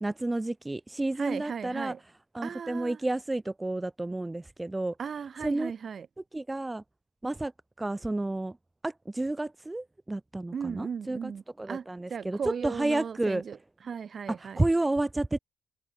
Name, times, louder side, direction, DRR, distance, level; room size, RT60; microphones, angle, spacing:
voice 1, 0.0-1.9 2.3-4.9 5.4-5.7 6.3-6.8 7.2-7.5 7.8-8.6 8.8-11.3 11.6-13.4 14.6-15.4, right 2 dB, 15° right, 0.5 m, -31 dB
voice 2, 1.2-2.0 2.4-3.0 5.0-6.1 10.5-13.6 13.8-14.7, right 6 dB, 45° right, 2.2 m, -36 dB
cardioid pair, 90°, 0 cm